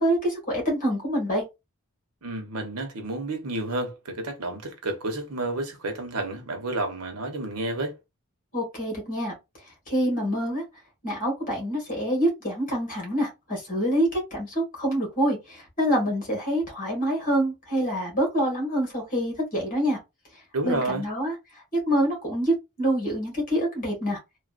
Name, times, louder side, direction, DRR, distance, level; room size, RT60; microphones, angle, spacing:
voice 1, 0.0-1.4 8.5-9.3 9.9-10.6 11.0-20.0 20.6-21.3 21.9-24.2, equal, 40° left, 1.8 m, -26 dB
voice 2, 2.2-7.9 20.5-21.0, right 2 dB, 80° right, 1.0 m, -30 dB
3.3 x 2.5 x 2.5 m
head